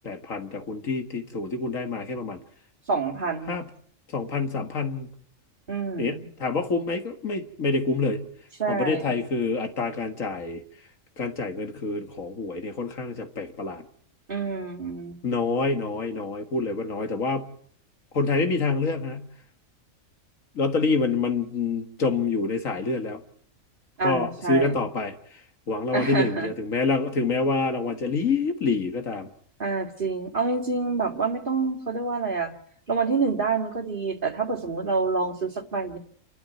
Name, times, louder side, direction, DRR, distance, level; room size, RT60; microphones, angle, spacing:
voice 1, 0.0-2.4 3.5-3.7 4.1-5.1 6.0-8.2 8.7-10.6 11.2-13.8 15.2-17.5 18.1-19.3 20.6-23.2 24.0-25.1 25.7-29.3, left 4 dB, 80° left, 6 dB, 2.2 m, -27 dB
voice 2, 2.9-3.6 5.7-6.2 8.6-9.1 14.3-15.2 24.0-24.8 25.9-26.5 29.6-32.5 32.9-36.0, right 4 dB, 40° right, 3 dB, 2.5 m, -27 dB
28.5 x 12.5 x 9.5 m, 0.63 s
omnidirectional pair, 1.4 m